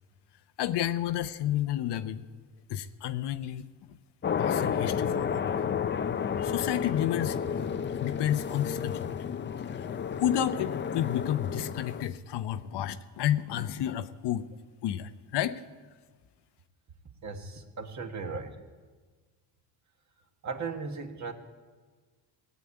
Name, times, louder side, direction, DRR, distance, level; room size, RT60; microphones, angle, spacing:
voice 1, 0.6-2.3 2.7-4.0 4.4-5.4 6.4-7.4 7.9-9.2 9.7-9.9 10.2-14.5 14.8-15.6, left 11 dB, 65° left, 11 dB, 0.8 m, -31 dB
sound 1, 4.2-12.0, left 7 dB, 25° left, 0.5 m, -31 dB
voice 2, 17.2-18.6 20.4-21.3, right 4 dB, 40° right, 5 dB, 1.6 m, -37 dB
17.5 x 8.4 x 8.5 m, 1.4 s
cardioid pair, 100°, 44 cm